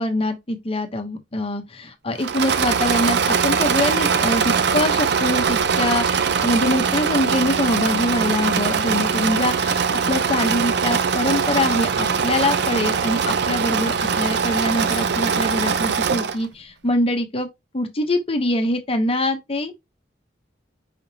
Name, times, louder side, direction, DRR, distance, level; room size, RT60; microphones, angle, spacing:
voice 1, 0.0-9.8 10.1-17.5 17.7-19.7, left 1 dB, 30° left, 0.9 m, -24 dB
Engine / Mechanisms, 2.2-16.5, right 6 dB, 65° right, 0.5 m, -21 dB
5.0 x 3.5 x 2.8 m
head